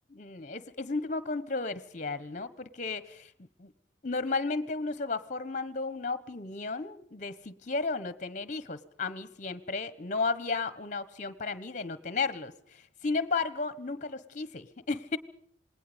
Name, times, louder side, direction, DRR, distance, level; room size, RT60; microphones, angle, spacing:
voice 1, 0.1-3.7 4.0-15.2, left 3 dB, 40° left, 15 dB, 1.3 m, -34 dB
27.5 x 20.0 x 5.3 m, 0.65 s
head